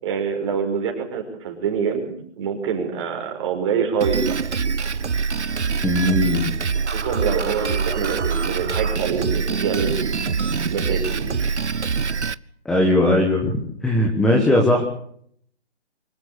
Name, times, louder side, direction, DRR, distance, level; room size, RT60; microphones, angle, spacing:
voice 1, 0.0-4.4 6.9-11.5, right 6 dB, 25° right, 3 dB, 5.6 m, -26 dB
Drum kit, 4.0-12.3, right 5 dB, 90° right, 1.0 m, -24 dB
voice 2, 5.8-6.5 12.6-13.5 13.8-14.8, left 1 dB, ahead, 0 dB, 1.2 m, -18 dB
25.0 x 14.0 x 8.2 m, 0.64 s
figure-of-eight pair, 155°, 34 cm